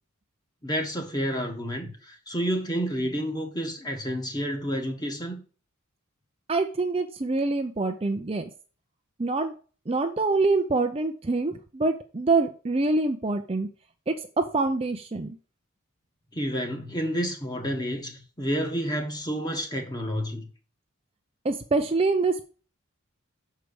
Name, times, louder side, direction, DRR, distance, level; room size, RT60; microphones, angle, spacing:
voice 1, 0.6-5.4 16.3-20.5, equal, 20° left, 1.6 m, -30 dB
voice 2, 6.5-8.4 9.2-9.6 9.9-13.7 14.1-15.4 21.4-22.4, right 3 dB, 25° right, 0.6 m, -25 dB
6.7 x 4.7 x 6.8 m
head